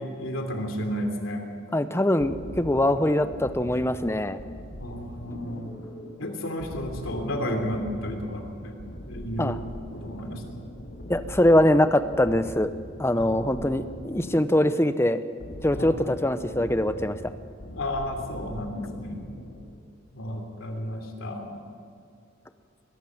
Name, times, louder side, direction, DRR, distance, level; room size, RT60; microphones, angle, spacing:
voice 1, 0.0-1.5 4.8-5.7 6.2-9.6 9.9-10.4 13.1-13.6 15.7-15.9 17.7-19.2 20.1-21.6, equal, 90° left, 4 dB, 3.2 m, -32 dB
voice 2, 1.7-4.4 9.4-9.6 11.1-12.7 13.0-15.2 15.6-17.2, left 1 dB, 15° left, 11 dB, 0.7 m, -23 dB
sound 1, 2.2-19.8, equal, 70° left, 2.5 m, -41 dB
21.5 x 13.0 x 9.4 m, 2.2 s
head